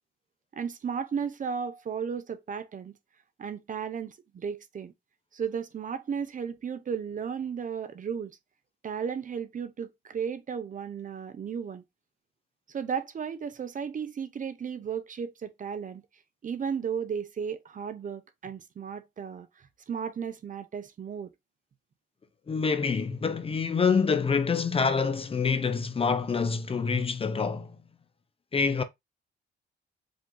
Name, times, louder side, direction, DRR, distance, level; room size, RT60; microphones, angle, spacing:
voice 1, 0.5-3.0 3.4-4.9 5.3-8.4 8.8-11.8 12.7-16.0 16.4-21.3, right 7 dB, 40° right, 0.7 m, -34 dB
voice 2, 22.5-27.8 28.5-28.8, left 5 dB, 30° left, 0.6 m, -26 dB
5.1 x 2.5 x 3.8 m
cardioid pair, 90°, 20 cm